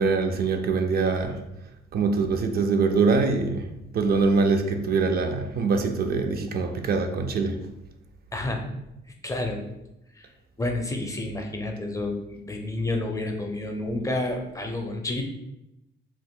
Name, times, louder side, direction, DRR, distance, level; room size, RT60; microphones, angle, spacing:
voice 1, 0.0-1.4 1.9-3.7 3.9-7.6, right 4 dB, 50° right, 0.4 m, -23 dB
voice 2, 8.3-8.7 9.2-9.6 10.2-10.3 10.6-15.2, left 2 dB, 15° left, 0.4 m, -30 dB
2.9 x 2.1 x 3.6 m
cardioid pair, 90°, 20 cm